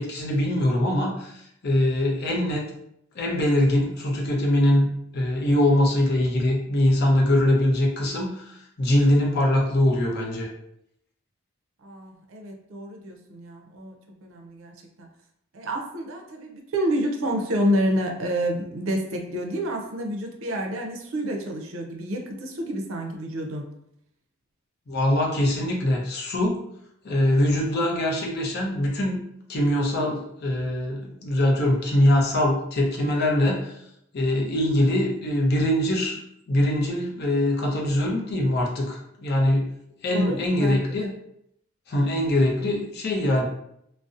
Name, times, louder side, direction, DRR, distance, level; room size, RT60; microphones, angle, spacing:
voice 1, 0.0-2.6 3.1-4.9 5.1-10.5 24.9-26.6 27.0-29.2 29.5-33.8 34.1-36.2 36.5-39.7 40.0-41.1 41.9-43.4, left 1 dB, 55° left, -1 dB, 0.5 m, -22 dB
voice 2, 11.8-15.1 15.5-23.7 40.1-41.1, equal, 70° right, 2 dB, 0.5 m, -29 dB
2.6 x 2.0 x 2.4 m, 0.76 s
head